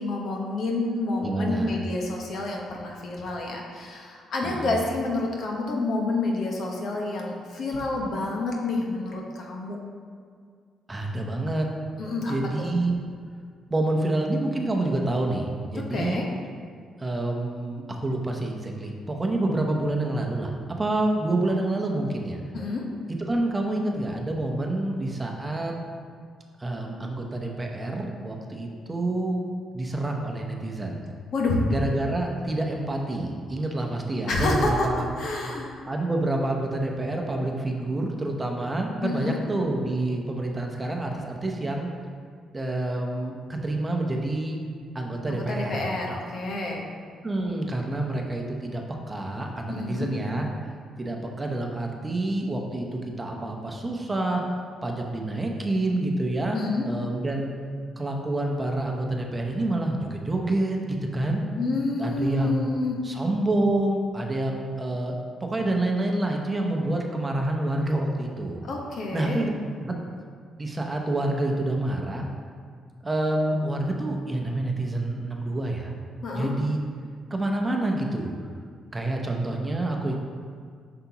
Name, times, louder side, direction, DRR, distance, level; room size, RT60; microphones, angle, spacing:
voice 1, 0.0-9.8 12.0-12.4 15.7-16.3 22.5-22.8 31.3-31.6 34.3-34.9 35.2-35.7 39.0-39.4 45.3-46.9 49.7-50.1 56.5-56.8 61.5-62.9 68.6-69.4 76.2-76.5, left 2 dB, 65° left, 0 dB, 1.1 m, -28 dB
voice 2, 1.2-1.7 4.4-4.7 10.9-11.7 12.3-13.0 13.7-16.2 17.0-22.4 23.2-25.7 26.6-29.4 29.7-31.0 31.7-35.1 35.8-41.9 42.5-44.6 44.9-45.8 47.2-50.5 51.0-54.4 54.8-56.6 56.8-57.5 58.0-61.4 62.0-62.7 63.0-65.1 65.4-68.6 69.1-69.5 69.8-69.9 70.6-72.2 73.0-75.9 76.3-76.8 77.3-78.3 78.9-80.2, right 2 dB, 20° right, 1 dB, 0.9 m, -27 dB
7.7 x 5.8 x 2.9 m, 2.1 s
cardioid pair, 90°, 0 cm